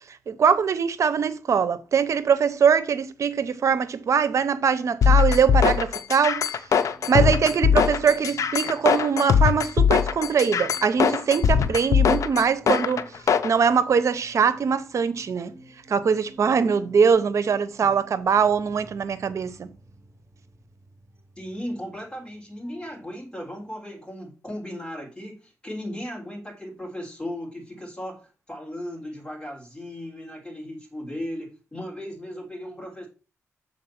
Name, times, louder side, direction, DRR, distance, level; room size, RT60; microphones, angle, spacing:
voice 1, 0.3-6.5 7.1-13.1 13.4-15.5 15.9-19.7, right 6 dB, 65° right, 0.7 m, -22 dB
sound 1, 5.0-13.5, left 7 dB, 75° left, 0.6 m, -21 dB
sound 2, 6.5-23.1 23.4-23.7, right 1 dB, 30° right, 3.5 m, -51 dB
voice 2, 21.4-33.1, equal, 15° left, 3.5 m, -36 dB
6.6 x 4.3 x 5.8 m
cardioid pair, 80°, 6 cm